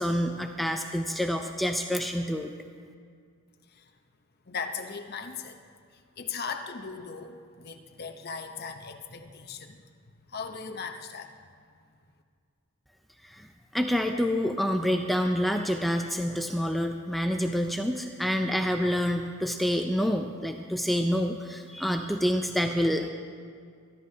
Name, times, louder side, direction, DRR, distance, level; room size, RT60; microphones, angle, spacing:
voice 1, 0.0-2.5 13.2-13.5 13.7-23.1, equal, ahead, 4 dB, 0.4 m, -27 dB
voice 2, 4.5-5.6 6.2-9.8 10.3-11.3, left 5 dB, 45° left, 5 dB, 0.8 m, -38 dB
25.0 x 11.5 x 2.8 m, 2.1 s
head